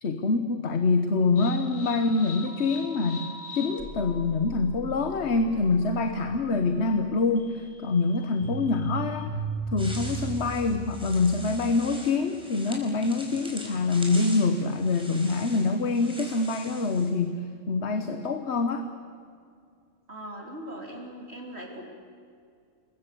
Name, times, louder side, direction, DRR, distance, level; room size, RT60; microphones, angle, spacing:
voice 1, 0.0-9.4 9.7-18.9, left 3 dB, 55° left, 8 dB, 1.4 m, -25 dB
sound 1, 1.4-12.0, right 2 dB, 80° left, 3.1 m, -38 dB
sound 2, 9.8-17.1, equal, 5° right, 5.0 m, -43 dB
voice 2, 20.1-21.8, right 1 dB, 55° right, -1 dB, 3.9 m, -40 dB
28.0 x 21.5 x 8.4 m, 2.3 s
omnidirectional pair, 1.3 m